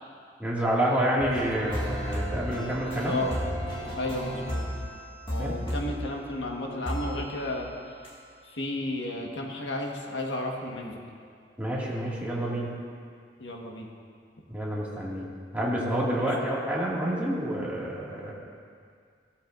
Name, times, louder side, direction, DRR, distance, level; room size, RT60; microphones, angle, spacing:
voice 1, 0.4-3.2 5.4-5.6 11.6-12.7 14.5-15.3 15.5-18.3, right 1 dB, 10° right, -6 dB, 2.2 m, -28 dB
sound 1, 1.2-6.4 6.9-7.7 8.0-8.1, equal, 30° left, 2.1 m, -34 dB
voice 2, 3.0-3.4 3.9-4.6 5.3-7.7 8.4-11.0 13.4-13.9 16.2-16.6, left 1 dB, 85° left, 0 dB, 1.6 m, -33 dB
16.5 x 13.0 x 2.6 m, 2.2 s
head